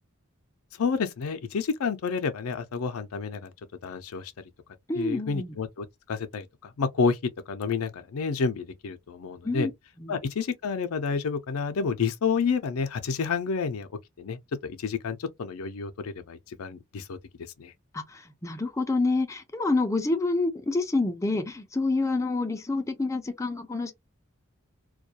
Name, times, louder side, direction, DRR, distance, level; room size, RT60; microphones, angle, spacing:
voice 1, 0.8-3.5 3.8-4.3 5.0-7.2 7.5-9.7 10.1-13.9 14.2-17.2 17.6-17.7, left 5 dB, 80° left, 0.5 m, -29 dB
voice 2, 4.9-5.5 9.4-9.7 10.0-10.2 17.9-23.9, left 3 dB, 15° left, 0.4 m, -27 dB
2.3 x 2.2 x 2.7 m
head